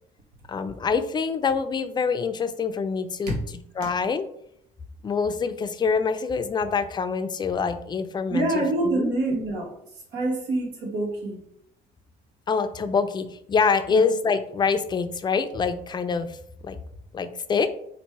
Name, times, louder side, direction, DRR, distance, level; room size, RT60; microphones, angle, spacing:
voice 1, 0.5-3.4 3.8-4.3 5.0-9.1 12.5-16.4 16.6-16.8 17.1-17.7, left 5 dB, 25° left, 10 dB, 0.4 m, -25 dB
voice 2, 8.3-9.7 10.1-11.4 13.9-14.0, right 2 dB, 85° right, -2 dB, 1.7 m, -26 dB
4.1 x 2.6 x 4.6 m, 0.71 s
cardioid pair, 110°, 17 cm